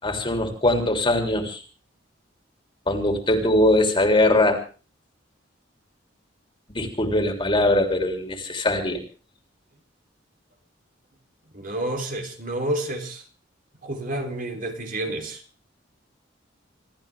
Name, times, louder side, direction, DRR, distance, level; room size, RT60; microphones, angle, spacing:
voice 1, 0.0-1.6 2.9-4.6 6.7-9.0, left 1 dB, 25° left, 3.4 m, -21 dB
voice 2, 11.5-13.2 13.8-15.4, right 1 dB, 45° right, 3.7 m, -29 dB
26.5 x 14.5 x 3.6 m
head